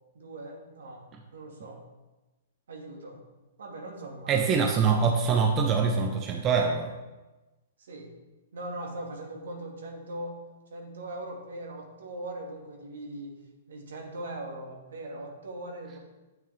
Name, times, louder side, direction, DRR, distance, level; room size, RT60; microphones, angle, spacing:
voice 1, 0.1-1.0 1.3-1.8 2.7-3.2 3.6-4.5 7.8-8.1 8.5-10.4 10.7-13.4 13.7-16.0, right 1 dB, 75° right, 0 dB, 2.3 m, -40 dB
voice 2, 4.3-6.9, right 5 dB, 30° right, 3 dB, 1.0 m, -24 dB
9.3 x 9.0 x 3.6 m, 1.1 s
hypercardioid pair, 120°, 0 cm